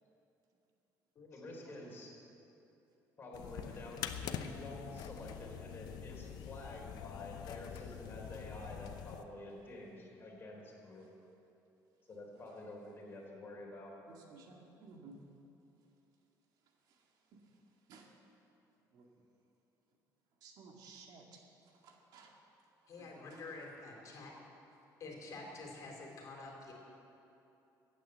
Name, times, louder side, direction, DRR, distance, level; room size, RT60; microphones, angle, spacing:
voice 1, 1.3-2.1 3.2-11.1 12.1-13.9, left 1 dB, 30° left, -1 dB, 3.7 m, -49 dB
sound 1, 3.3-9.2, left 9 dB, 70° left, 0.8 m, -45 dB
voice 2, 14.1-15.1 17.9-18.1 18.9-19.0 20.4-21.2 21.8-22.3, right 4 dB, 70° right, 1 dB, 2.0 m, -55 dB
voice 3, 22.9-24.3 25.0-26.7, left 3 dB, 50° left, 0 dB, 3.2 m, -48 dB
15.0 x 9.1 x 7.9 m, 2.9 s
cardioid pair, 125°, 7 cm